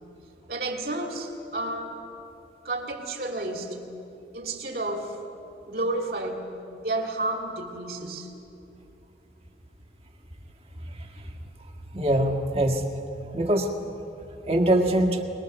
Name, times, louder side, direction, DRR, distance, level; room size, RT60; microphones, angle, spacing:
voice 1, 0.5-1.9 2.6-3.8 4.3-5.2 5.7-6.5 6.8-8.3, right 2 dB, 55° right, 2 dB, 2.7 m, -31 dB
voice 2, 11.9-12.8 13.3-13.7 14.5-15.2, right 1 dB, 35° right, 3 dB, 1.7 m, -22 dB
23.0 x 22.0 x 6.9 m, 2.9 s
head